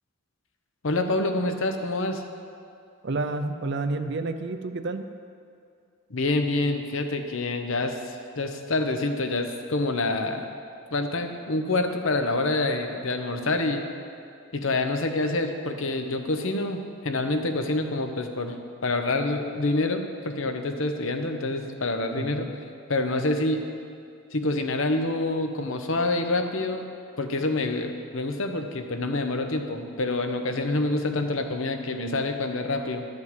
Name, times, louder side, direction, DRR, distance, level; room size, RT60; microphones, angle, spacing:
voice 1, 0.8-2.2 6.1-10.6 10.9-13.9 14.5-18.6 18.8-22.5 22.9-23.6 24.3-26.9 27.2-33.1, left 2 dB, 60° left, 6 dB, 0.9 m, -27 dB
voice 2, 3.0-5.1 22.2-22.5, right 3 dB, 50° right, 8 dB, 0.6 m, -30 dB
12.0 x 5.4 x 8.1 m, 2.4 s
head